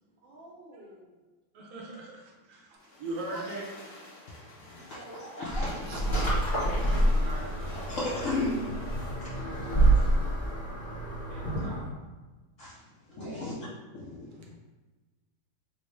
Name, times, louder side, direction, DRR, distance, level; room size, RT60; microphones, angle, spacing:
voice 1, 0.2-1.1 4.7-5.4 9.8-10.8 13.1-13.5, right 1 dB, 85° right, -4 dB, 1.6 m, -49 dB
voice 2, 1.5-3.9 5.9-7.7 11.2-11.9, right 2 dB, 65° right, -2 dB, 1.0 m, -41 dB
sound 1, 2.8-9.2, left 2 dB, 50° left, 1.2 m, -49 dB
voice 3, 5.4-5.7 6.1-6.2 7.9-8.6 12.6-12.7 13.2-13.5 13.9-14.5, left 2 dB, 80° left, -6 dB, 0.7 m, -33 dB
sound 2, 5.5-11.8, right 1 dB, 20° left, 0.9 m, -27 dB
4.2 x 2.0 x 3.0 m, 1.2 s
omnidirectional pair, 2.0 m